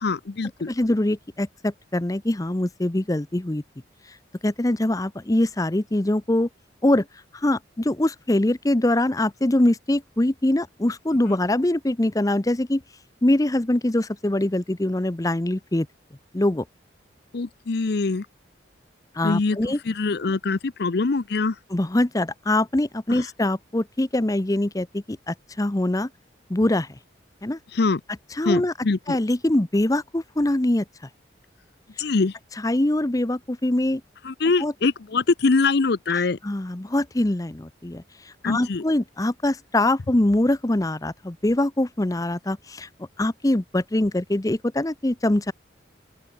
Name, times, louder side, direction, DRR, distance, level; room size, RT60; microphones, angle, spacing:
voice 1, 0.0-0.7 17.3-18.3 19.2-19.6 19.9-21.6 23.1-23.2 27.7-28.0 28.5-29.2 32.0-32.3 34.2-36.4 38.4-38.8, left 3 dB, 60° left, 0.6 m, -23 dB
voice 2, 0.7-3.6 4.4-6.5 6.8-7.1 7.3-12.8 13.2-15.9 16.3-16.6 19.1-19.8 21.7-26.1 26.5-26.9 27.4-27.6 28.3-28.7 29.1-30.8 32.6-34.0 34.6-34.7 36.4-38.0 38.4-42.9 43.2-45.5, left 1 dB, 20° left, 0.7 m, -23 dB
open air
head